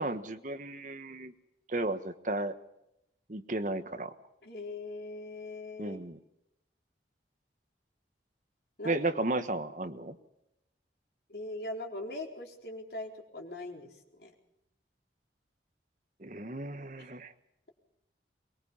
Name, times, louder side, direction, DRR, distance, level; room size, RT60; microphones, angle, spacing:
voice 1, 0.0-1.3 1.7-2.5 3.3-4.1 5.8-6.2 8.8-10.2 16.2-17.3, right 2 dB, 45° right, 10 dB, 1.3 m, -34 dB
voice 2, 4.4-6.0 8.8-9.0 11.3-14.3 17.0-17.1, left 2 dB, 65° left, 1 dB, 4.2 m, -41 dB
23.0 x 21.0 x 5.5 m, 0.83 s
head